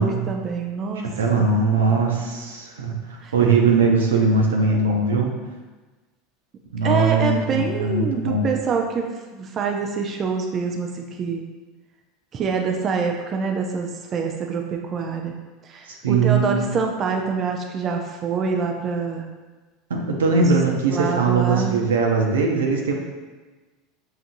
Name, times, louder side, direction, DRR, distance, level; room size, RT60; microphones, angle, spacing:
voice 1, 0.0-1.5 3.2-3.3 6.8-9.1 9.3-11.4 12.3-15.3 15.6-19.3 20.9-21.8, right 5 dB, 40° right, 2 dB, 0.4 m, -26 dB
voice 2, 1.2-2.9 3.3-5.3 6.7-8.5 15.9-16.7 19.9-22.9, right 4 dB, 90° right, 1 dB, 0.6 m, -20 dB
5.8 x 2.5 x 2.6 m, 1.3 s
hypercardioid pair, 90°, 0 cm